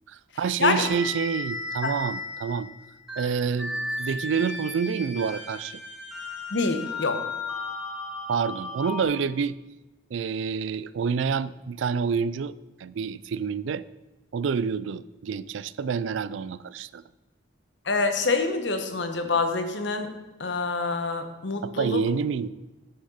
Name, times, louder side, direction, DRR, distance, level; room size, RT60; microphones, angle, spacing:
voice 1, 0.1-2.7 3.2-5.8 8.3-9.6 10.1-12.5 12.8-13.8 14.3-17.0 21.6-22.5, right 6 dB, 75° right, 18 dB, 0.3 m, -28 dB
voice 2, 0.6-0.9 1.8-1.9 6.5-7.2 17.9-20.1 20.4-22.0, left 3 dB, 70° left, 7 dB, 1.1 m, -26 dB
sound 1, 0.8-9.0, left 2 dB, ahead, 1.6 m, -35 dB
9.7 x 6.5 x 5.5 m, 1.1 s
head